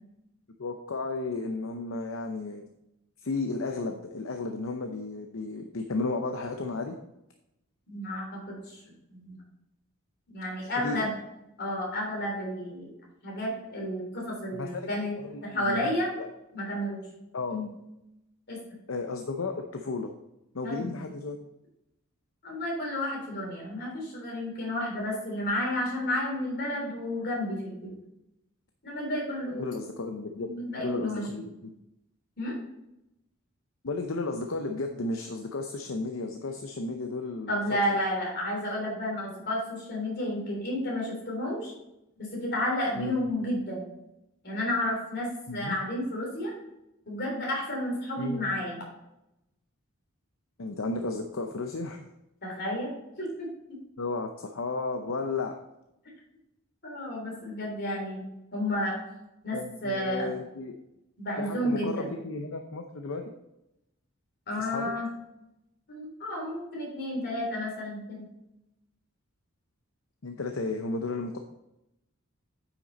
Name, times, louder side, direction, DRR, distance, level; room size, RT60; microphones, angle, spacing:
voice 1, 0.6-2.6 3.2-7.0 10.8-11.0 14.5-14.8 15.1-15.9 17.3-17.6 18.9-20.1 20.5-21.4 29.5-30.5 30.8-31.7 33.8-37.6 43.0-43.2 45.5-45.8 48.2-48.4 50.6-52.0 54.0-55.5 59.5-60.8 61.4-63.2 64.6-64.9 70.2-71.4, left 3 dB, 70° left, 4 dB, 0.7 m, -33 dB
voice 2, 7.9-8.8 9.1-9.4 10.3-11.1 11.6-12.9 13.2-15.1 15.4-16.1 16.5-17.0 17.5-17.7 18.5-18.6 20.6-20.9 22.4-27.9 28.8-29.6 30.4-31.4 32.4-32.6 37.5-41.7 42.2-43.8 44.4-46.5 47.1-48.8 52.4-52.9 53.2-53.8 56.8-58.2 58.5-59.0 59.4-60.3 61.2-62.1 64.5-65.1 65.9-68.3, left 1 dB, 50° left, -2 dB, 3.4 m, -31 dB
9.0 x 6.0 x 4.2 m, 0.88 s
head